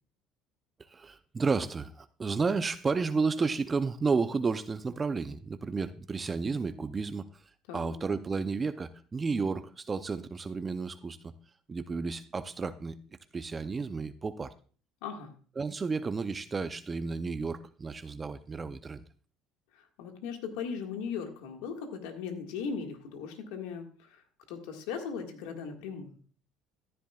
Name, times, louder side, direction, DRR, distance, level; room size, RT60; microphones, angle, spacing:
voice 1, 0.9-7.4 7.7-11.3 11.7-13.0 13.3-14.5 15.6-19.0, right 4 dB, 25° right, 12 dB, 0.6 m, -32 dB
voice 2, 15.0-15.3 19.7-24.2 24.5-26.2, left 6 dB, 85° left, 4 dB, 1.8 m, -38 dB
14.0 x 10.5 x 2.4 m, 0.40 s
supercardioid pair, 95°, 0 cm